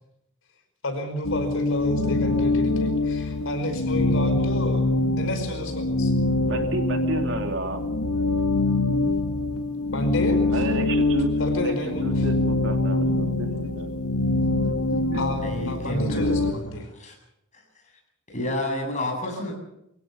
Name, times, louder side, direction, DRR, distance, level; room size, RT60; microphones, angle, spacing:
voice 1, 0.8-4.9 5.2-6.1 9.9-10.6 11.4-12.3 15.1-16.9, left 1 dB, 60° left, 6 dB, 5.2 m, -30 dB
sound 1, 1.2-16.5, left 2 dB, 80° left, 2.1 m, -24 dB
voice 2, 6.4-7.8 10.5-11.7 12.0-13.9 14.6-15.2, right 2 dB, 60° right, 5 dB, 3.1 m, -31 dB
voice 3, 15.4-17.2 17.5-17.6 18.3-19.5, left 1 dB, 35° left, 2 dB, 7.9 m, -30 dB
24.5 x 16.5 x 7.1 m, 0.81 s
head